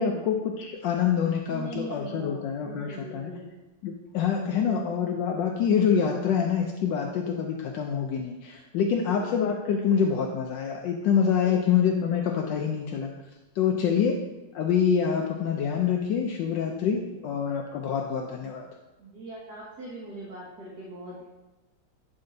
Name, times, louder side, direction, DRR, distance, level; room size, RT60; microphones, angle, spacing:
voice 1, 0.0-3.3 3.8-13.1 13.6-14.1 14.5-18.7, left 7 dB, 75° left, 1 dB, 1.3 m, -26 dB
voice 2, 1.5-3.5 4.5-4.9 8.9-9.3 11.4-11.7 13.7-14.1 16.9-17.3 19.0-21.2, right 2 dB, 60° right, -6 dB, 1.8 m, -41 dB
11.5 x 4.3 x 2.7 m, 1.1 s
omnidirectional pair, 2.0 m